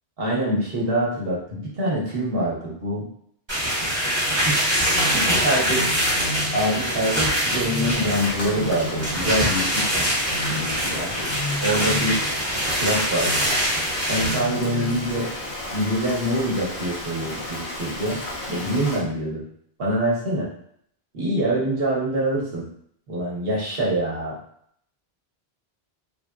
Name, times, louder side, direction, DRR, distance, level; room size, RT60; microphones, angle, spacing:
voice 1, 0.2-3.0 4.4-4.9 5.1-6.0 6.5-10.1 10.5-11.1 11.6-12.2 12.8-13.4 14.1-15.3 15.7-18.2 18.5-19.4 19.8-20.5 21.1-22.6 23.1-24.4, right 1 dB, 65° right, -5 dB, 1.1 m, -25 dB
sound 1, 3.5-14.4, equal, 25° right, 1.2 m, -24 dB
sound 2, 4.9-7.1 7.5-9.9 10.3-15.6, left 1 dB, 70° left, 1.0 m, -34 dB
Rain, 7.9-19.0, left 1 dB, 90° left, 1.2 m, -34 dB
3.3 x 2.5 x 2.2 m, 0.68 s
omnidirectional pair, 1.1 m